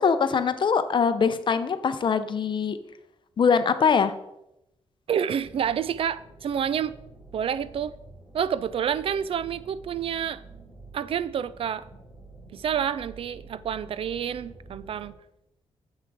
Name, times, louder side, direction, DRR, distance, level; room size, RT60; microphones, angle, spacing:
voice 1, 0.0-2.8 3.4-4.1, left 6 dB, 50° left, 11 dB, 0.6 m, -22 dB
voice 2, 5.1-6.9 7.3-7.9 8.3-10.4 10.9-11.9 12.5-15.1, right 8 dB, 60° right, 17 dB, 0.4 m, -28 dB
sound 1, 5.4-15.1, right 3 dB, 25° right, 2.6 m, -48 dB
7.4 x 5.8 x 4.7 m, 0.85 s
cardioid pair, 110°, 11 cm